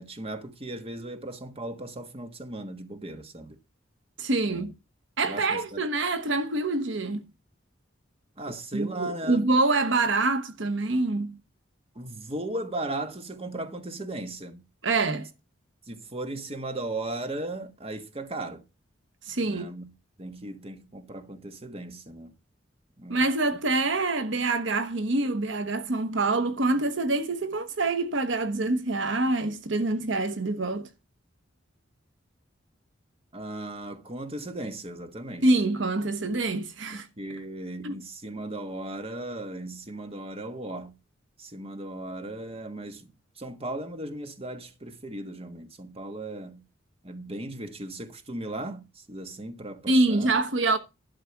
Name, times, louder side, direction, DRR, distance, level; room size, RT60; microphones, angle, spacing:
voice 1, 0.0-3.6 4.4-4.7 5.2-5.8 8.4-9.5 11.9-14.6 15.9-18.6 19.4-19.9 20.2-22.3 23.0-23.2 33.3-35.5 35.8-35.9 36.9-40.9 41.4-43.1 43.4-46.6 47.0-50.4, right 1 dB, 30° right, 1.4 m, -37 dB
voice 2, 4.2-4.7 5.2-7.2 8.7-11.4 14.8-15.3 19.3-19.7 23.1-30.9 35.4-37.1 37.8-38.0 49.9-50.8, right 2 dB, 65° right, 1.1 m, -26 dB
12.0 x 5.7 x 5.8 m
head